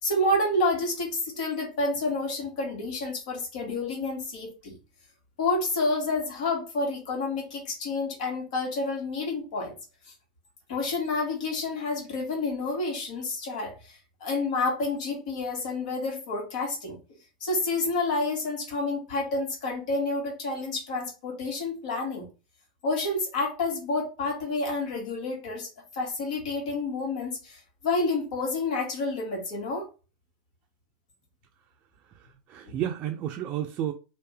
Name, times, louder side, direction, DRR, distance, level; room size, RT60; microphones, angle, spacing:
voice 1, 0.0-4.8 5.4-9.7 10.7-17.0 17.4-22.3 22.8-25.7 25.9-29.9 32.7-32.8, left 2 dB, 70° left, 1.8 m, -29 dB
voice 2, 32.0-33.9, right 11 dB, 40° right, 0.5 m, -32 dB
3.4 x 2.6 x 3.3 m
supercardioid pair, 130°, 4 cm